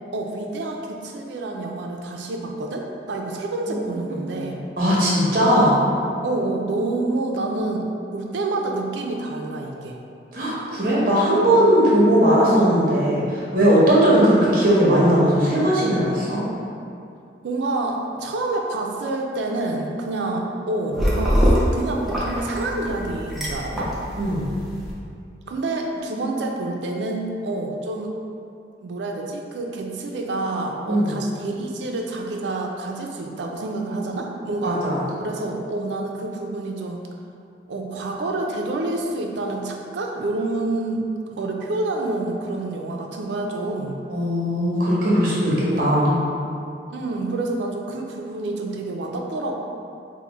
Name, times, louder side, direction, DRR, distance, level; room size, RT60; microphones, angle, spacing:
voice 1, 0.1-4.6 6.2-10.0 17.4-21.4 21.7-23.9 25.5-28.1 28.8-34.8 35.2-37.0 37.7-41.1 41.3-44.0 46.9-49.6, right 2 dB, 75° right, 1 dB, 0.4 m, -28 dB
voice 2, 3.7-4.1 4.8-5.8 10.3-16.4 23.6-23.9 24.2-24.4 30.9-31.1 34.6-35.0 44.1-46.2, equal, 50° right, -6 dB, 0.8 m, -18 dB
sound 1, 20.9-24.9, equal, ahead, 0.4 m, -24 dB
4.7 x 2.1 x 3.0 m, 2.5 s
head